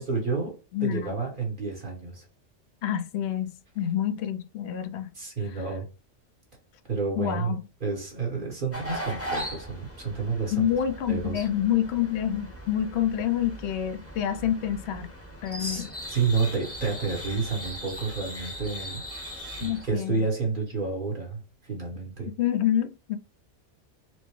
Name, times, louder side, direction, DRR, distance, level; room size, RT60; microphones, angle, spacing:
voice 1, 0.0-2.2 5.1-5.9 6.9-7.5 7.8-10.6 11.1-11.5 15.6-22.3, right 4 dB, 45° right, 1.3 m, -30 dB
voice 2, 0.7-1.2 2.8-5.1 5.5-5.6 7.2-7.6 10.5-15.1 15.4-15.9 19.6-20.3 22.4-23.2, left 10 dB, 70° left, 0.8 m, -27 dB
sound 1, 8.7-19.8, equal, 15° left, 0.8 m, -39 dB
4.4 x 2.1 x 2.9 m
omnidirectional pair, 1.3 m